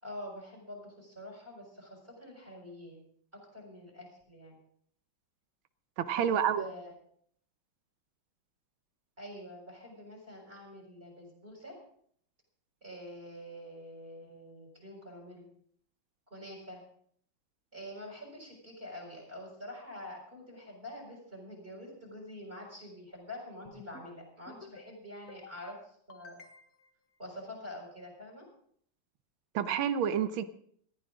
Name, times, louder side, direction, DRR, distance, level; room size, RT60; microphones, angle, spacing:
voice 1, 0.0-3.0 3.3-4.6 6.1-6.9 9.2-11.8 12.8-15.5 16.3-16.8 17.7-26.4 27.2-28.5, left 1 dB, 30° right, 0 dB, 6.3 m, -46 dB
voice 2, 6.0-6.6 29.6-30.4, right 8 dB, 85° right, 13 dB, 1.7 m, -28 dB
sound 1, 23.7-24.1 24.5-24.9 25.3-25.7 26.1-26.9, left 4 dB, 50° left, 1.9 m, -52 dB
19.0 x 14.5 x 3.7 m, 0.63 s
omnidirectional pair, 2.1 m